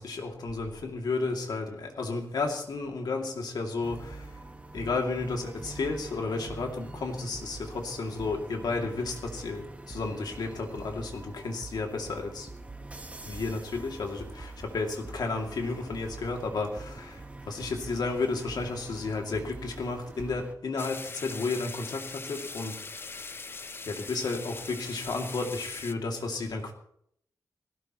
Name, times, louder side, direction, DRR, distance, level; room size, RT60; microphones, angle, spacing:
voice 1, 0.0-4.2 4.7-12.5 13.3-17.1 17.5-22.7 23.9-26.7, left 3 dB, 80° left, 2 dB, 2.6 m, -32 dB
sound 1, 3.8-20.6, right 2 dB, 20° right, 1.0 m, -44 dB
sound 2, 20.8-25.9, left 4 dB, 35° left, 0.6 m, -41 dB
18.5 x 16.5 x 3.1 m, 0.66 s
wide cardioid pair, 175°, 7 cm